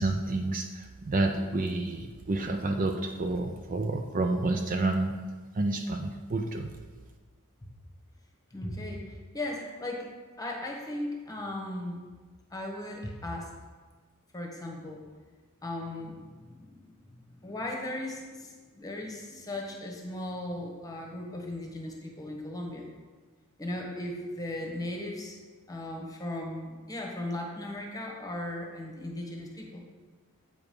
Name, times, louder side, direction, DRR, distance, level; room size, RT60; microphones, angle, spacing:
voice 1, 0.0-5.1 5.5-6.7, right 2 dB, 40° right, 4 dB, 0.5 m, -29 dB
voice 2, 8.5-10.1 10.4-12.1 12.5-13.5 14.3-15.1 15.6-22.9 23.6-25.4 25.7-29.8, left 1 dB, 15° left, 0 dB, 1.1 m, -37 dB
8.2 x 5.0 x 5.2 m, 1.4 s
head